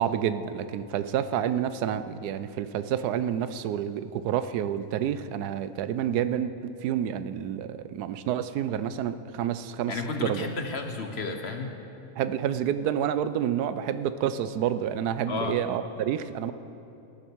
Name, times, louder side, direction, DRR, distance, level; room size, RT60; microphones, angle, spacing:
voice 1, 0.0-10.5 12.2-16.5, right 9 dB, 90° right, 13 dB, 1.1 m, -29 dB
voice 2, 9.9-11.8 15.3-15.6, left 3 dB, 50° left, 5 dB, 1.0 m, -32 dB
17.5 x 11.5 x 4.6 m, 2.8 s
omnidirectional pair, 1.6 m